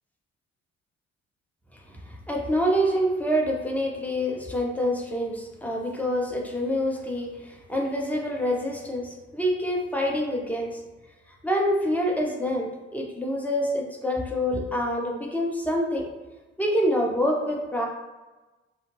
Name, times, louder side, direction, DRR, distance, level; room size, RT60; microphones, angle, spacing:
voice 1, 2.1-10.8 11.4-16.1 16.6-17.9, equal, 5° left, -1 dB, 0.7 m, -26 dB
2.4 x 2.1 x 3.1 m, 1.2 s
hypercardioid pair, 40°, 32 cm